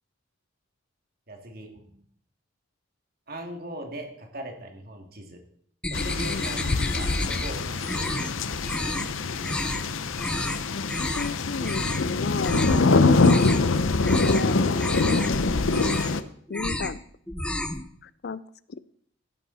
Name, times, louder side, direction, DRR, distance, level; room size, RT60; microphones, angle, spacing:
voice 1, 1.3-2.0 3.3-5.4 5.9-8.3, right 1 dB, 50° right, 3 dB, 2.5 m, -40 dB
sound 1, 5.8-7.5 7.8-8.3 8.6-9.1 9.4-9.8 10.2-10.6 10.9-11.3 11.6-12.1 12.4-12.8 13.1-13.7 14.0-14.5 14.8-15.3 15.6-16.2 16.5-17.0 17.3-17.8, left 1 dB, 5° left, 0.8 m, -31 dB
sound 2, 5.9-16.2, left 3 dB, 85° left, 0.8 m, -24 dB
voice 2, 10.8-12.6 12.9-13.0 13.3-13.5 14.0-14.7 16.5-17.0 18.0-18.4, left 4 dB, 55° left, 17 dB, 0.5 m, -33 dB
15.0 x 11.0 x 4.2 m, 0.64 s
head